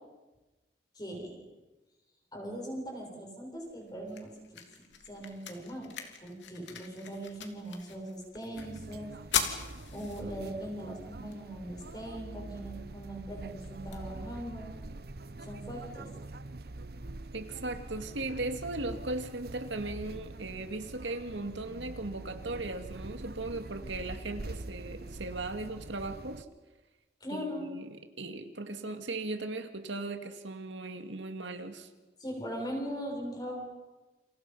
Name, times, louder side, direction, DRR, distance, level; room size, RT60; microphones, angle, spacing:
voice 1, 0.9-1.4 2.3-4.3 5.1-9.1 9.9-14.7 15.4-16.1 27.2-27.7 32.2-33.6, equal, 20° left, 0 dB, 7.6 m, -40 dB
sound 1, 3.5-15.5, left 7 dB, 80° left, 2.9 m, -42 dB
sound 2, 8.6-26.4, right 2 dB, 55° right, 0.9 m, -44 dB
voice 2, 17.3-26.5 27.3-31.9, right 2 dB, 80° right, 6 dB, 2.2 m, -38 dB
29.5 x 28.0 x 5.7 m, 1.1 s
head